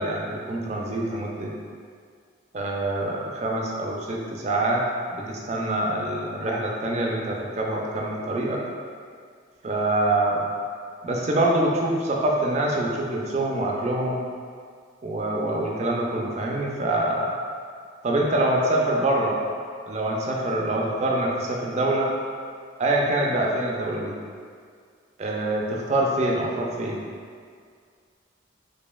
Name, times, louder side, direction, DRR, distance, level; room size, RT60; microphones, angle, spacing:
voice 1, 0.0-1.5 2.5-4.8 5.1-8.6 9.6-10.4 11.0-14.2 15.0-17.3 18.0-19.4 19.9-22.1 22.8-24.2 25.2-27.0, right 1 dB, 35° right, -1 dB, 0.4 m, -25 dB
4.0 x 3.1 x 2.3 m, 2.1 s
head